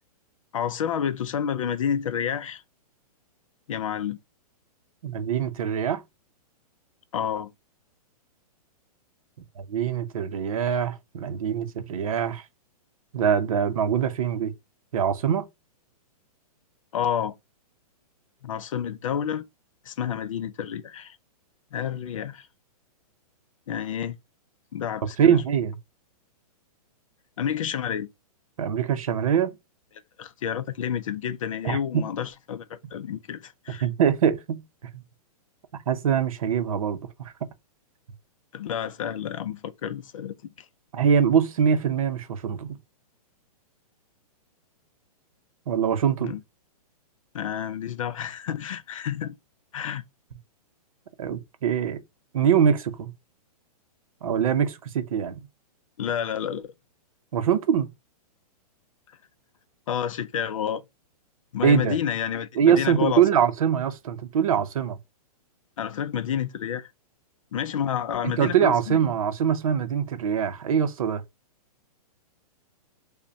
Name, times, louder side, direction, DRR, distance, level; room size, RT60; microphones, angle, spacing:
voice 1, 0.5-2.6 3.7-4.2 7.1-7.5 16.9-17.3 18.4-19.4 19.9-21.2 21.7-22.5 23.7-24.2 24.7-25.4 27.4-28.1 30.2-33.9 38.5-40.7 46.2-46.4 47.3-49.3 49.7-50.0 56.0-56.7 59.9-60.8 61.5-63.2 65.8-66.9 67.5-69.0, left 8 dB, 55° left, 0.4 m, -29 dB
voice 2, 5.0-6.0 9.6-12.4 13.1-14.5 14.9-15.5 25.2-25.8 28.6-29.6 31.6-32.1 33.8-34.6 34.9-35.0 35.9-37.3 40.9-42.8 45.7-46.4 51.2-52.0 52.3-53.1 54.2-55.4 57.3-57.9 61.6-62.0 62.6-65.0 68.2-71.2, right 8 dB, 60° right, 0.6 m, -23 dB
5.1 x 2.2 x 2.6 m
hypercardioid pair, 175°, 20 cm